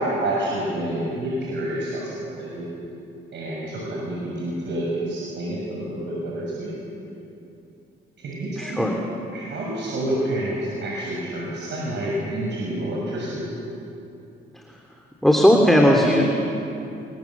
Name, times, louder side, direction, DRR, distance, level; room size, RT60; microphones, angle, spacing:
voice 1, 0.0-2.7 3.3-6.7 8.2-8.9 9.3-13.5, right 1 dB, 65° right, -4 dB, 6.4 m, -28 dB
voice 2, 8.6-9.0 14.5-14.8 15.2-16.2, equal, ahead, 0 dB, 2.9 m, -17 dB
26.5 x 23.5 x 7.3 m, 2.8 s
cardioid pair, 90°, 20 cm